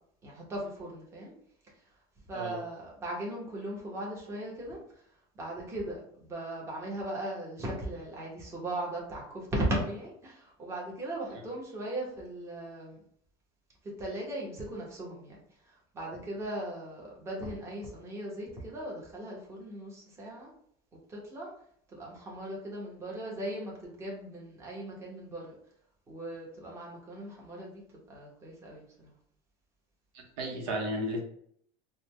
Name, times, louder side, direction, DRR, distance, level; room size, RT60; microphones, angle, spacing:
voice 1, 0.2-1.3 2.3-4.8 5.3-13.0 13.8-15.4 15.6-20.5 21.1-21.5 21.9-25.5 26.1-27.8 28.1-29.1, right 1 dB, 20° right, -3 dB, 1.1 m, -38 dB
voice 2, 30.1-31.2, right 1 dB, 75° right, 0 dB, 0.9 m, -33 dB
3.8 x 2.2 x 3.2 m, 0.65 s
cardioid pair, 155°, 14 cm